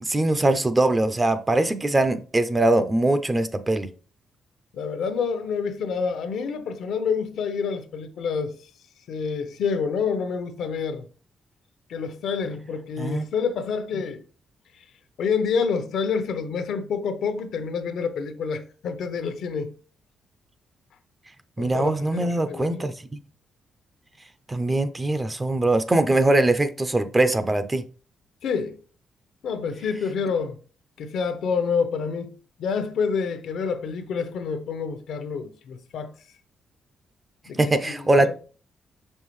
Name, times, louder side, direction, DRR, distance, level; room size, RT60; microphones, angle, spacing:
voice 1, 0.0-3.9 13.0-13.2 21.6-22.9 24.5-27.8 37.6-38.3, right 2 dB, 15° right, 0.5 m, -22 dB
voice 2, 4.7-8.5 9.1-11.0 11.9-14.2 14.8-14.9 15.2-19.7 21.6-22.9 28.4-28.8 29.4-30.6 31.0-32.3 32.6-36.1 37.5-38.3, left 5 dB, 75° left, 0.8 m, -28 dB
6.1 x 5.5 x 3.1 m
cardioid pair, 130°, 0 cm